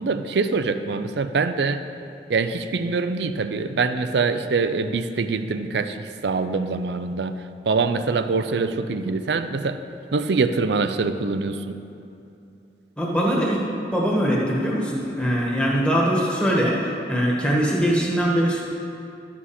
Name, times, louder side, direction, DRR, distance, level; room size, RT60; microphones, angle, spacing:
voice 1, 0.0-1.8 2.3-6.0 6.2-7.3 7.7-9.8 10.1-11.8, right 4 dB, 75° right, 10 dB, 0.5 m, -24 dB
voice 2, 13.0-13.6 13.9-18.6, equal, 5° left, -4 dB, 1.5 m, -22 dB
12.0 x 7.3 x 4.2 m, 2.7 s
head